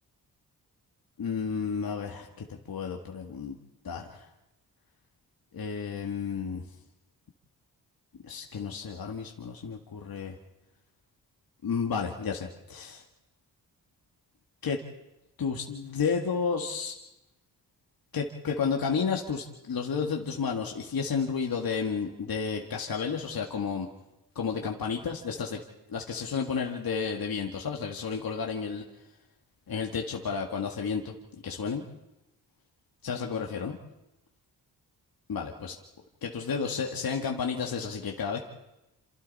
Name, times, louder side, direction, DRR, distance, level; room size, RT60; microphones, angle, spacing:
voice 1, 1.2-3.6 3.8-4.3 5.5-6.6 8.2-10.3 11.6-13.0 14.6-14.8 15.4-17.0 18.1-23.9 24.4-25.6 25.9-28.8 29.7-31.1 31.4-31.8 33.0-33.8 35.3-35.8 36.2-38.5, left 6 dB, 60° left, 1 dB, 2.1 m, -31 dB
28.0 x 27.5 x 4.3 m, 0.94 s
supercardioid pair, 50°, 41 cm